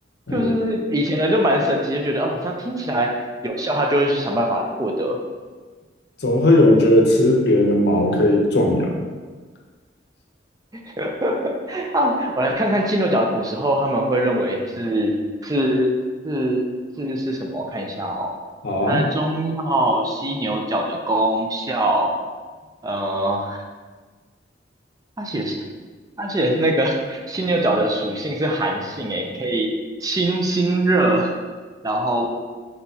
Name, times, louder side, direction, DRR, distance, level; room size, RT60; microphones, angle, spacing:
voice 1, 0.3-5.2 11.0-15.2 15.4-15.9 16.2-16.6 16.9-18.3 18.8-22.1 22.8-23.6 25.2-25.6 26.2-29.7 30.0-31.3 31.8-32.3, right 1 dB, 20° right, 1 dB, 0.4 m, -22 dB
voice 2, 6.2-9.0 18.6-19.0, left 1 dB, 65° left, 0 dB, 0.7 m, -17 dB
4.4 x 4.1 x 2.7 m, 1.4 s
head